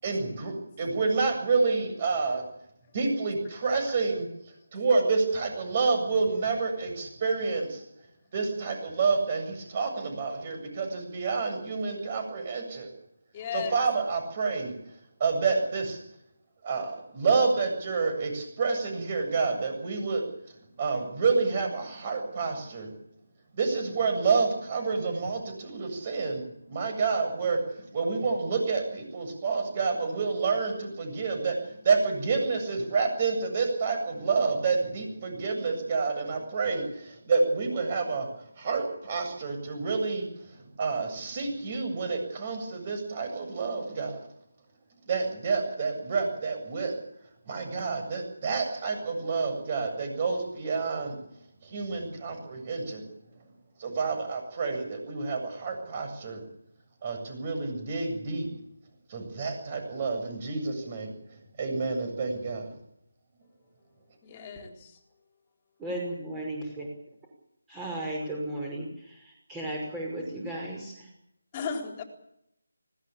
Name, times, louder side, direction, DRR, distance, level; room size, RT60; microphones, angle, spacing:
voice 1, 0.0-2.4 2.9-4.3 4.7-7.8 8.3-12.9 13.5-14.7 15.2-16.0 16.6-20.2 20.8-22.9 23.5-38.3 38.6-44.3 45.0-46.9 47.5-51.2 51.6-53.1 53.8-56.4 57.0-58.5 59.1-61.1 61.6-62.7, right 4 dB, 30° right, 6 dB, 7.6 m, -28 dB
voice 2, 13.3-13.8 64.2-65.0 71.5-72.0, left 6 dB, 25° left, 4 dB, 3.9 m, -35 dB
voice 3, 65.8-66.9 67.7-71.1, right 1 dB, 10° right, -1 dB, 5.7 m, -35 dB
20.0 x 18.0 x 8.7 m, 0.78 s
figure-of-eight pair, 165°, 0 cm